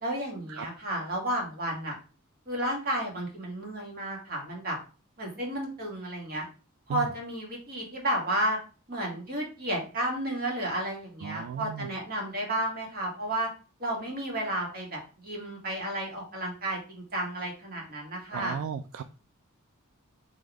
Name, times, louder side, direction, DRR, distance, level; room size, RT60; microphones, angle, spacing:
voice 1, 0.0-2.0 2.5-4.8 5.2-6.4 6.9-8.6 8.9-13.5 13.8-18.6, right 1 dB, 45° right, -1 dB, 1.7 m, -32 dB
voice 2, 11.2-11.9 18.3-19.0, right 7 dB, 65° right, 10 dB, 0.3 m, -35 dB
3.9 x 2.9 x 4.7 m, 0.36 s
head